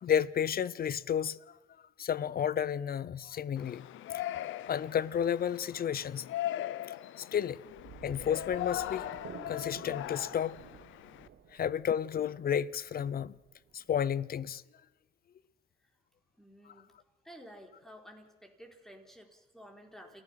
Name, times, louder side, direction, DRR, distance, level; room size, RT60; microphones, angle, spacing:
voice 1, 0.0-1.4 2.0-3.9 4.7-6.3 6.9-7.6 8.0-9.0 9.5-10.6 11.5-13.4 13.7-14.6, left 8 dB, 50° left, 0.7 m, -32 dB
Yell, 3.6-11.3, left 13 dB, 80° left, 0.8 m, -40 dB
sound 1, 7.6-14.4, right 8 dB, 70° right, 1.8 m, -52 dB
voice 2, 16.4-16.9 17.2-20.2, equal, ahead, 4.2 m, -52 dB
29.5 x 15.0 x 5.8 m
cardioid pair, 90°, 20 cm